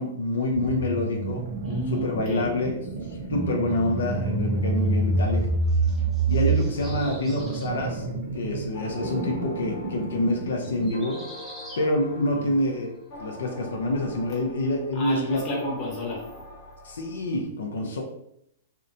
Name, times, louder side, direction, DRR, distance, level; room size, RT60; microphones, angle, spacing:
voice 1, 0.0-1.4 1.9-2.8 3.3-5.5 6.3-8.1 8.3-11.2 11.8-12.9 13.2-15.4 16.8-18.0, left 1 dB, 90° left, 1 dB, 0.5 m, -27 dB
sound 1, 0.5-11.0, right 3 dB, 45° right, 0.6 m, -28 dB
voice 2, 1.6-2.5 12.3-12.6 14.3-14.4 14.9-16.5, left 1 dB, 25° left, -4 dB, 0.9 m, -32 dB
sound 2, 3.4-3.8 5.5-7.7 10.6-11.9, equal, ahead, 0.6 m, -46 dB
sound 3, 8.7-17.5, left 1 dB, 55° left, 1.0 m, -43 dB
2.7 x 2.1 x 2.5 m, 0.74 s
hypercardioid pair, 155°, 0 cm